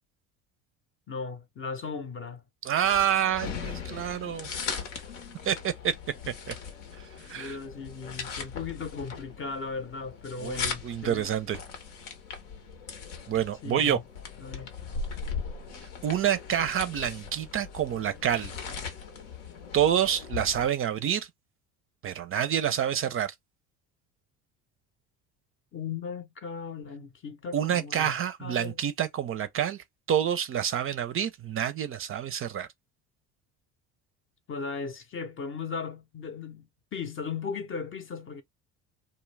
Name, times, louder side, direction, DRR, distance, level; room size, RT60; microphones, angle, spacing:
voice 1, 1.1-2.4 7.3-11.3 13.6-14.0 14.4-14.7 25.7-28.8 34.5-38.4, left 5 dB, 35° left, 0.6 m, -37 dB
voice 2, 2.6-4.5 5.4-5.9 6.3-6.5 7.3-7.6 10.4-11.6 13.3-14.0 16.0-18.5 19.7-21.3 22.0-23.3 27.5-32.7, right 9 dB, 35° right, 0.5 m, -28 dB
sound 1, 2.8-20.7, left 5 dB, 85° left, 0.9 m, -39 dB
2.3 x 2.1 x 3.2 m
hypercardioid pair, 75°, 37 cm